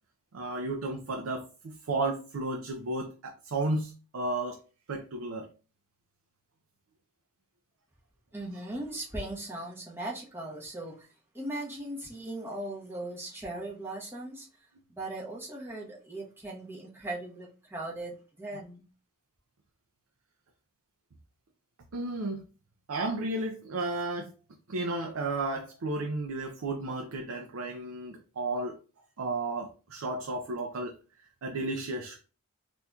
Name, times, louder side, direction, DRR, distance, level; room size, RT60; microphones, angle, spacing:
voice 1, 0.3-4.6 4.9-5.5 21.9-22.4 22.9-24.3 24.7-28.8 29.2-30.9 31.2-32.2, right 2 dB, 85° right, 3 dB, 0.5 m, -33 dB
voice 2, 8.3-11.1 11.3-14.5 14.9-18.8, right 1 dB, 10° right, -4 dB, 1.0 m, -38 dB
4.2 x 2.6 x 2.3 m, 0.34 s
head